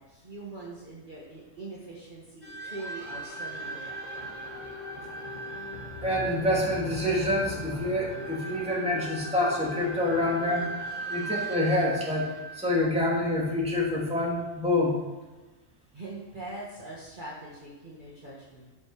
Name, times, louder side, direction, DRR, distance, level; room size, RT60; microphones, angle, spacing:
voice 1, 0.0-3.9 15.9-18.7, right 2 dB, 35° right, -5 dB, 1.8 m, -42 dB
sound 1, 2.4-13.6, right 1 dB, 35° left, 1.4 m, -38 dB
voice 2, 6.0-10.7 11.1-15.0, left 1 dB, 5° right, -5 dB, 2.6 m, -27 dB
13.0 x 5.9 x 4.8 m, 1.2 s
omnidirectional pair, 1.4 m